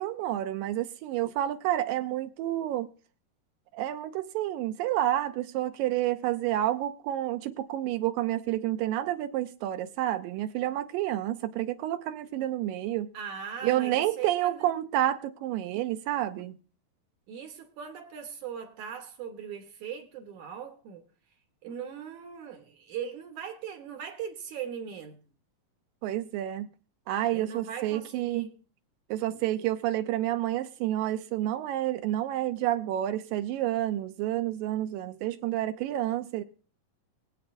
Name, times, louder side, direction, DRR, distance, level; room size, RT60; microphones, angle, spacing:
voice 1, 0.0-2.9 3.7-13.1 13.6-16.6 26.0-26.7 27.1-28.5 29.1-36.4, right 13 dB, 85° right, 2.3 m, -29 dB
voice 2, 13.1-14.7 17.3-21.1 21.6-25.2 27.3-28.5 29.3-29.4, right 7 dB, 65° right, 2.3 m, -40 dB
21.5 x 8.4 x 2.6 m
omnidirectional pair, 3.9 m